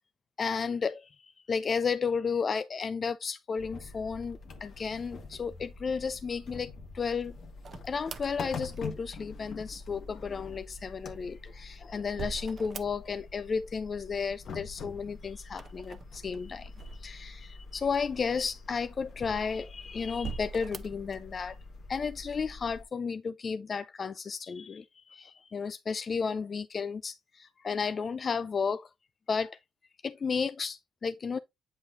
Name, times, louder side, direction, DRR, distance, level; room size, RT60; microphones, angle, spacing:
voice 1, 0.4-7.4 7.8-21.6 21.9-28.9 29.3-29.6 30.0-31.4, left 5 dB, 40° left, 0.3 m, -33 dB
sound 1, 3.6-22.8, left 4 dB, 60° left, 1.4 m, -45 dB
sound 2, 7.6-9.3 11.1-13.4 13.6-14.3 15.5-17.6 18.2-18.3 19.1-19.7 20.1-21.1, right 5 dB, 45° right, 0.6 m, -44 dB
8.1 x 5.2 x 2.5 m
cardioid pair, 90°, 0 cm